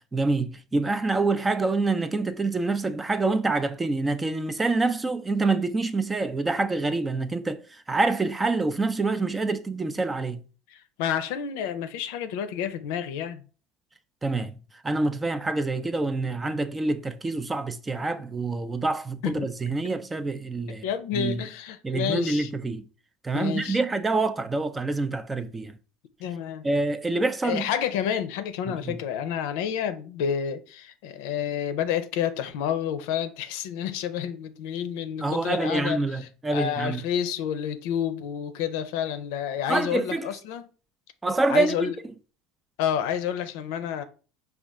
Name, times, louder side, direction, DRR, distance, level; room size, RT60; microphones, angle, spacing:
voice 1, 0.1-7.6 7.9-10.4 14.2-14.6 14.8-20.8 21.1-21.4 21.8-22.8 23.2-25.7 26.6-27.6 28.7-29.0 35.2-37.0 39.7-40.3 41.2-41.9, right 3 dB, 15° right, 0.4 m, -26 dB
voice 2, 10.7-13.4 19.2-19.5 20.8-22.5 23.3-23.8 26.2-26.6 27.4-40.6 41.5-41.9 42.8-44.0, left 9 dB, 75° left, 0.6 m, -29 dB
5.0 x 2.4 x 3.5 m
supercardioid pair, 95°, 0 cm